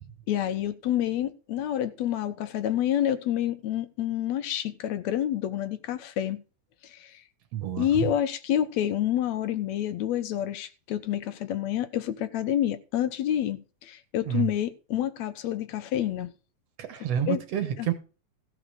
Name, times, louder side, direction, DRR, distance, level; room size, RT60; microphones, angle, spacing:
voice 1, 0.3-6.4 6.8-7.2 7.8-16.3 17.3-17.4 17.8-17.9, left 11 dB, 75° left, 2.1 m, -28 dB
voice 2, 7.5-8.1 14.3-14.5 16.8-17.9, right 10 dB, 65° right, 2.2 m, -29 dB
15.0 x 5.0 x 6.5 m
omnidirectional pair, 3.3 m